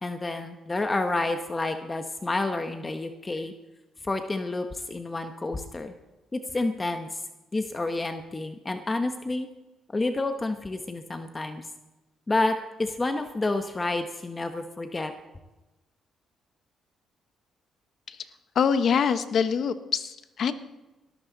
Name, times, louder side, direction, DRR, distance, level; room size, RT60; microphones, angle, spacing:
voice 1, 0.0-3.5 4.0-5.9 6.3-7.2 7.5-9.5 9.9-11.7 12.3-15.1, left 2 dB, 25° left, 7 dB, 1.0 m, -29 dB
voice 2, 18.5-20.5, left 6 dB, 60° left, 11 dB, 1.1 m, -24 dB
19.0 x 13.5 x 4.0 m, 1.1 s
cardioid pair, 90°, 0 cm